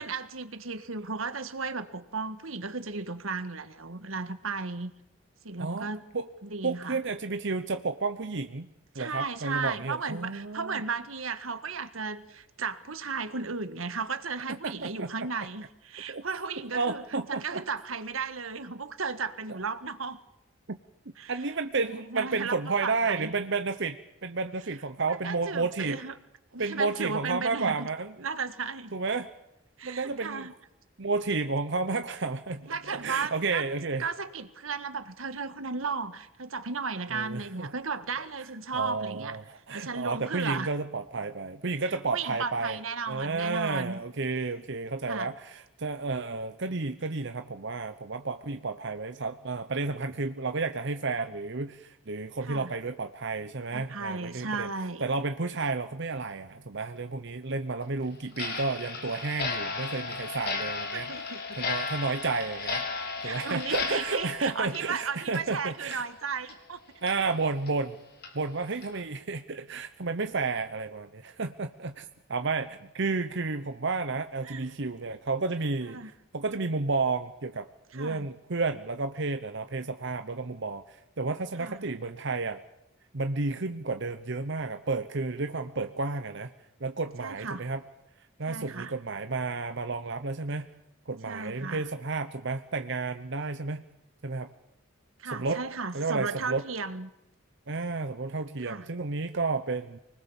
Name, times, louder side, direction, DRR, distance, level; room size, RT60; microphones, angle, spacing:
voice 1, 0.0-4.9 5.4-6.0 6.4-7.0 8.9-17.0 17.3-20.2 21.2-21.3 22.0-23.3 25.1-26.1 26.5-27.9 28.2-28.9 29.8-30.5 32.7-33.7 34.0-39.4 39.7-40.7 42.1-44.0 45.1-45.3 52.4-52.7 53.7-55.0 60.9-61.7 63.2-66.8 74.4-74.7 75.9-76.1 77.9-78.3 81.6-81.9 87.2-87.6 88.5-88.9 91.3-91.8 95.2-97.1 98.6-98.9, right 4 dB, 85° right, 11 dB, 1.6 m, -35 dB
voice 2, 6.6-8.7 8.9-10.8 14.6-15.1 16.1-16.2 16.7-17.6 20.7-20.8 21.3-26.0 26.6-28.1 28.9-29.3 29.8-30.5 31.0-34.1 37.1-37.7 38.2-38.3 38.7-42.8 43.1-54.7 55.0-61.1 61.6-62.8 63.2-66.0 67.0-68.0 68.3-77.7 77.9-82.6 83.1-86.5 86.8-87.8 88.4-90.7 91.1-93.8 94.2-94.5 95.3-95.6 95.9-96.6 97.7-100.0, right 3 dB, 60° right, 8 dB, 1.0 m, -31 dB
Clock, 58.3-65.6 65.9-66.0 66.5-66.6 67.1-67.2 67.7-67.8 68.2-68.3 68.8-69.0, left 4 dB, 50° left, 4.3 m, -35 dB
25.0 x 20.0 x 7.2 m, 0.88 s
head